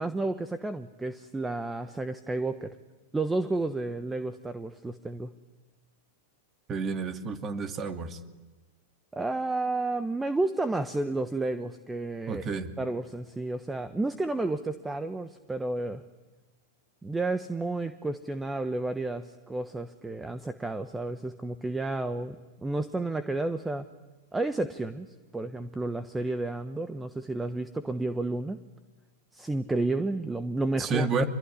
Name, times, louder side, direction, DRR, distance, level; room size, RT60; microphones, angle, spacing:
voice 1, 0.0-2.8 3.1-5.3 9.1-16.0 17.0-23.9 24.3-25.1 25.3-28.6 29.3-31.1, right 2 dB, 10° right, 10 dB, 1.2 m, -31 dB
voice 2, 6.7-8.2 12.3-12.7 30.8-31.3, right 4 dB, 30° right, 6 dB, 2.5 m, -30 dB
26.0 x 22.5 x 10.0 m, 1.2 s
hypercardioid pair, 110°, 0 cm